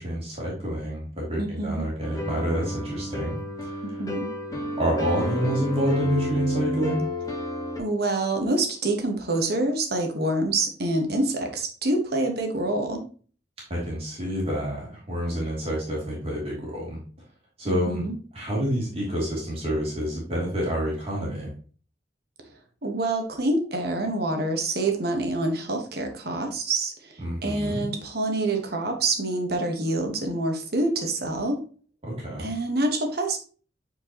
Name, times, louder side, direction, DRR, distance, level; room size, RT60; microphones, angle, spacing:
voice 1, 0.0-3.8 4.8-7.0 13.7-17.0 17.6-18.1 18.3-21.5 27.2-27.9 32.0-32.5, equal, 35° right, -4 dB, 2.8 m, -28 dB
voice 2, 1.4-1.8 3.8-4.3 7.8-13.1 17.6-18.2 22.8-31.6 32.4-33.4, right 2 dB, 60° right, 4 dB, 1.3 m, -26 dB
sound 1, 2.0-7.8, left 1 dB, 20° left, 1.4 m, -31 dB
8.5 x 4.6 x 2.9 m, 0.40 s
head